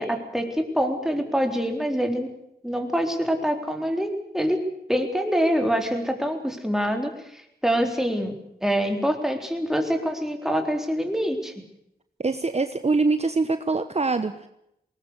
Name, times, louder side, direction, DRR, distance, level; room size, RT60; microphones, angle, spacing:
voice 1, 0.0-2.3 2.6-4.6 4.9-11.5, equal, 5° right, 4 dB, 3.9 m, -25 dB
voice 2, 12.2-14.5, right 3 dB, 40° right, 10 dB, 1.0 m, -24 dB
20.5 x 19.5 x 8.2 m, 0.79 s
wide cardioid pair, 65°, 17 cm